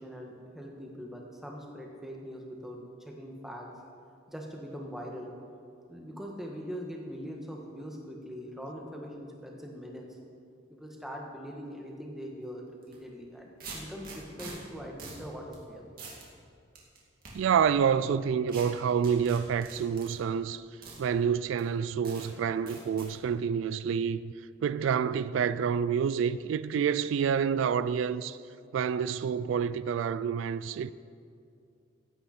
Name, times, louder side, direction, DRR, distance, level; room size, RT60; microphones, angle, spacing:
voice 1, 0.0-3.7 4.3-5.3 5.9-10.1 10.8-12.6 12.9-15.8, equal, ahead, 1.4 m, -42 dB
sound 1, 12.8-13.0 13.6-14.5 15.0-15.2 15.5-15.6 16.0-16.2 16.7-17.3 18.5-18.6 19.0-20.1 20.8-21.0 21.6-21.7 22.0-22.3 22.7-23.1, right 4 dB, 45° right, 2.4 m, -44 dB
voice 2, 17.3-20.6 21.0-24.3 24.6-28.4 28.7-30.9, right 7 dB, 80° right, 0.3 m, -28 dB
15.5 x 9.0 x 4.3 m
head